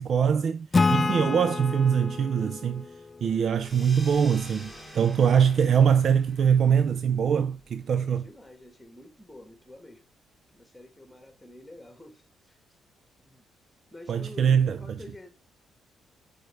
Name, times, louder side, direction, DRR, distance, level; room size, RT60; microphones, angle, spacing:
voice 1, 0.0-2.9 3.2-8.2 14.1-15.0, right 7 dB, 60° right, 0.4 m, -23 dB
Acoustic guitar / Strum, 0.7-4.2, left 3 dB, 25° left, 0.4 m, -28 dB
sound 1, 3.5-8.6, equal, 15° right, 3.4 m, -48 dB
voice 2, 7.9-10.0 10.5-12.6 13.2-13.5 13.9-14.5 14.8-15.3, left 1 dB, 5° left, 1.7 m, -48 dB
6.2 x 5.0 x 3.3 m
cardioid pair, 90°, 0 cm